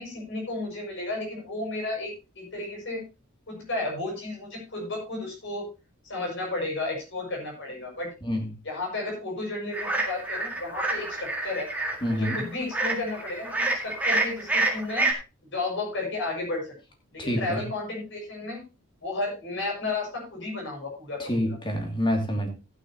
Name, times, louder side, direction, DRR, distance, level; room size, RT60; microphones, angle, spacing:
voice 1, 0.0-3.0 3.5-5.7 6.1-8.1 8.6-11.7 12.1-15.1 15.5-16.6 17.1-18.6 19.0-21.6, left 2 dB, 55° left, 0 dB, 6.6 m, -33 dB
sound 1, 9.7-15.1, right 2 dB, 5° right, 2.0 m, -28 dB
voice 2, 12.0-12.4 17.2-17.6 21.2-22.5, equal, 20° left, 3 dB, 2.6 m, -27 dB
15.0 x 9.4 x 3.0 m, 0.28 s
head